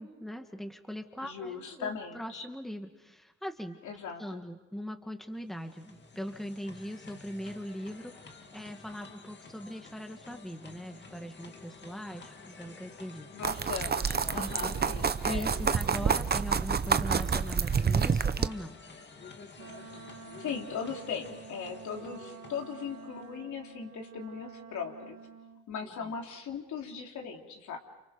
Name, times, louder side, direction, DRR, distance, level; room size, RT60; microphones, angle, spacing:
voice 1, 0.0-3.8 4.2-13.3 14.3-14.8 15.2-18.8 25.8-25.9, equal, ahead, 5 dB, 2.0 m, -41 dB
voice 2, 1.2-2.4 3.8-4.4 13.3-16.1 20.4-25.2 25.7-27.8, left 6 dB, 70° left, 1 dB, 3.7 m, -39 dB
sound 1, 5.3-23.4, left 4 dB, 35° left, 2.3 m, -50 dB
sound 2, 13.4-18.5, right 6 dB, 30° right, 0.9 m, -28 dB
Wind instrument woodwind instrument, 19.6-25.7, right 6 dB, 75° right, 1.7 m, -49 dB
30.0 x 28.0 x 5.3 m, 0.99 s
cardioid pair, 90°, 30 cm